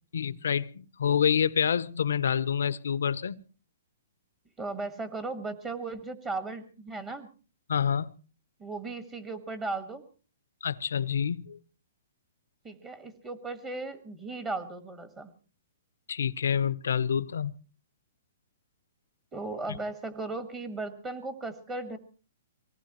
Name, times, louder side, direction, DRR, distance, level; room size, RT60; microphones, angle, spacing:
voice 1, 0.1-3.4 7.7-8.2 10.6-11.6 16.1-17.5, left 7 dB, 80° left, 0.7 m, -27 dB
voice 2, 4.6-7.3 8.6-10.0 12.6-15.3 19.3-22.0, right 3 dB, 20° right, 1.6 m, -36 dB
24.0 x 18.5 x 3.0 m
hypercardioid pair, 150°, 0 cm